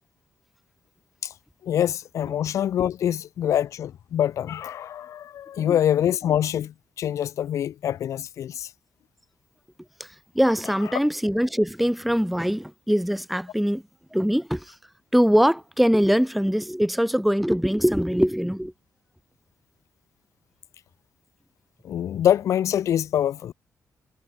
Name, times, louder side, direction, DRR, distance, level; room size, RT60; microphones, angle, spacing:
voice 1, 1.6-8.7 21.8-23.5, left 10 dB, 60° left, 0.4 m, -25 dB
voice 2, 10.0-13.8 14.1-14.7 15.1-18.7, equal, ahead, 1.5 m, -22 dB
wide cardioid pair, 160°, 6 cm